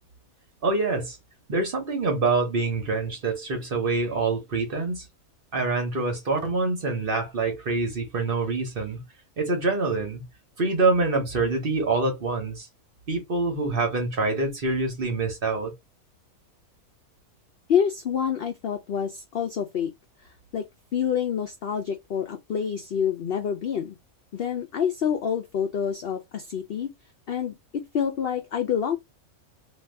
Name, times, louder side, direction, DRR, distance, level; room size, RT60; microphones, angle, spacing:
voice 1, 0.6-1.2 1.5-5.1 5.5-9.0 9.4-10.2 10.6-12.7 13.1-15.7, right 3 dB, 45° right, 0.8 m, -25 dB
voice 2, 17.7-19.9 20.5-20.6 20.9-24.0 24.3-26.9 27.3-27.5 27.9-29.0, left 8 dB, 70° left, 0.5 m, -27 dB
2.6 x 2.3 x 3.2 m
omnidirectional pair, 1.5 m